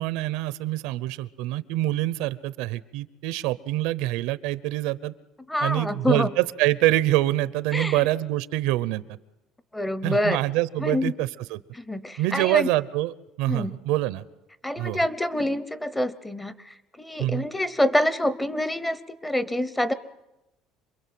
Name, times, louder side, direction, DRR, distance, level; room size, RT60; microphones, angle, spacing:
voice 1, 0.0-5.1 5.6-9.0 10.0-11.6 12.2-14.2 14.8-15.1 17.2-17.5, right 16 dB, 80° right, 17 dB, 0.8 m, -25 dB
voice 2, 5.5-6.3 7.7-8.0 9.7-10.4 10.8-11.1 11.7-12.7 13.5-13.7 14.6-16.5 17.0-19.9, left 1 dB, 5° left, 15 dB, 0.8 m, -26 dB
27.0 x 22.0 x 7.7 m, 0.94 s
cardioid pair, 160°, 0 cm